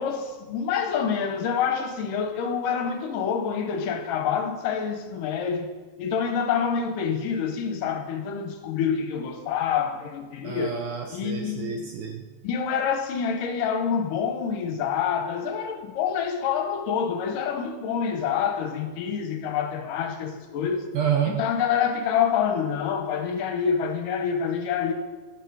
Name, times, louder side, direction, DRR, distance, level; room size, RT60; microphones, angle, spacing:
voice 1, 0.0-5.7 6.0-10.8 11.1-11.9 12.4-20.9 21.4-24.9, left 7 dB, 70° left, 5 dB, 2.4 m, -27 dB
voice 2, 10.4-12.3 20.9-21.5, right 8 dB, 80° right, 4 dB, 1.9 m, -28 dB
12.0 x 11.5 x 4.8 m, 1.3 s
omnidirectional pair, 4.3 m